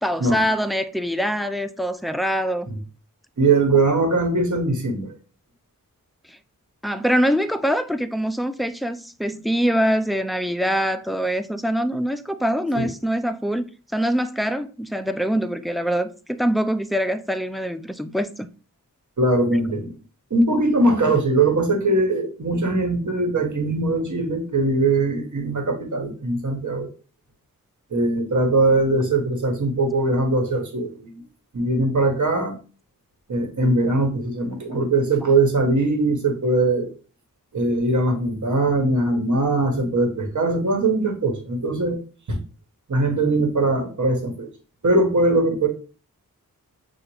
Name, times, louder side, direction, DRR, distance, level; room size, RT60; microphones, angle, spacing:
voice 1, 0.0-2.7 6.3-6.4 6.8-18.5, equal, ahead, 0.3 m, -24 dB
voice 2, 3.4-5.1 12.8-12.9 19.2-19.9 20.3-26.9 27.9-31.1 31.5-32.6 33.3-36.9 37.5-42.0 42.3-42.4 42.9-44.5 44.8-45.7, right 2 dB, 55° right, 1.3 m, -21 dB
6.2 x 2.4 x 2.9 m
cardioid pair, 50°, 35 cm